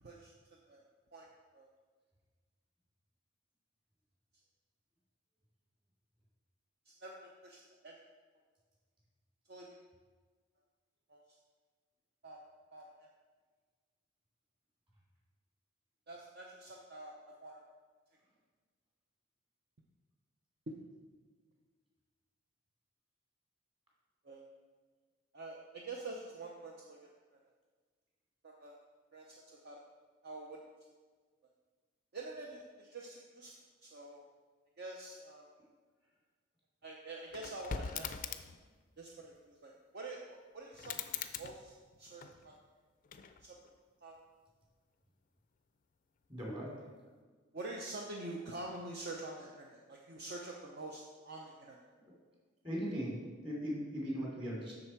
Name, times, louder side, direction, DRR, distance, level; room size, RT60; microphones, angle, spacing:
voice 1, 0.0-0.8 1.1-1.3 1.5-1.7 6.9-8.0 9.5-9.7 11.1-11.2 12.2-12.4 12.7-12.9 16.1-17.6 20.7-20.8 24.2-24.5 25.3-27.4 28.4-28.8 29.1-29.9 30.2-30.6 32.1-33.5 33.8-34.2 34.8-35.5 36.8-38.1 39.0-41.0 41.4-42.5 43.4-43.6 44.0-44.2 47.5-51.8, right 2 dB, 50° right, -1 dB, 0.7 m, -47 dB
sound 1, 37.3-38.7 40.7-42.6 43.0-43.7, left 7 dB, 40° left, 0.4 m, -43 dB
voice 2, 46.3-46.9 52.6-54.7, equal, 25° right, -5 dB, 2.7 m, -39 dB
7.7 x 6.5 x 4.5 m, 1.5 s
head